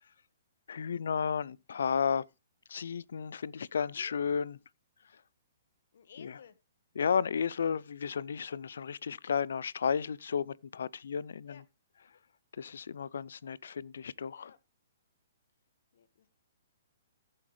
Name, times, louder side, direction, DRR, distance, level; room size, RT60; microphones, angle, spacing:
voice 1, 0.7-2.2 2.7-4.6 6.2-6.4 7.0-11.6 12.6-14.5, left 6 dB, 80° left, 0.5 m, -33 dB
voice 2, 3.7-4.2 5.9-6.6 11.4-11.6 14.4-14.6 15.9-16.3, left 7 dB, 65° left, 1.5 m, -55 dB
15.0 x 7.7 x 3.2 m
hypercardioid pair, 165°, 0 cm